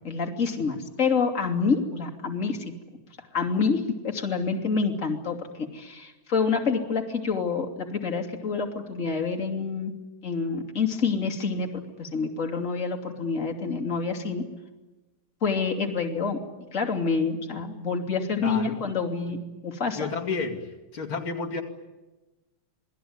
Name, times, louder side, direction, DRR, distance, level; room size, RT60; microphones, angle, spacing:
voice 1, 0.0-2.7 3.3-9.9 10.2-14.5 15.4-16.4 16.7-19.4 19.6-20.1, left 5 dB, 35° left, 1 dB, 3.1 m, -27 dB
voice 2, 18.4-18.8 20.0-21.6, left 4 dB, 70° left, -1 dB, 3.3 m, -31 dB
28.0 x 20.0 x 9.6 m, 1.1 s
omnidirectional pair, 2.4 m